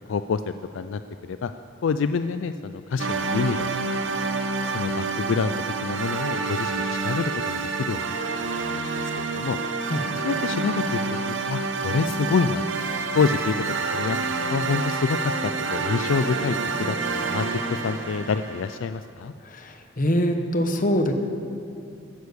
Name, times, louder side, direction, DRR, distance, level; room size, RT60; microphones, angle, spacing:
voice 1, 0.1-1.5 1.8-3.7 4.2-4.3 4.7-5.5 5.8-8.0 8.4-9.6 10.2-11.0 11.3-12.6 13.1-13.6 13.9-14.2 14.5-19.3, left 5 dB, 75° left, 11 dB, 0.4 m, -27 dB
sound 1, 3.0-18.8, right 4 dB, 75° right, 1.0 m, -28 dB
voice 2, 19.4-21.1, equal, 45° left, 6 dB, 1.1 m, -24 dB
14.5 x 9.6 x 6.9 m, 2.5 s
head